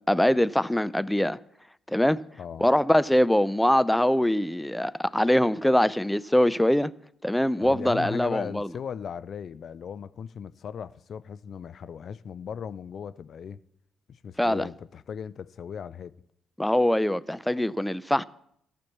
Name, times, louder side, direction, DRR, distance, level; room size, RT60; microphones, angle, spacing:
voice 1, 0.1-1.4 1.9-2.2 2.6-6.9 7.2-8.7 14.4-14.7 16.6-18.2, left 1 dB, 5° left, 0.5 m, -23 dB
voice 2, 7.6-13.6 14.1-16.1, left 7 dB, 55° left, 0.5 m, -37 dB
14.0 x 6.0 x 7.2 m
hypercardioid pair, 45°, 0 cm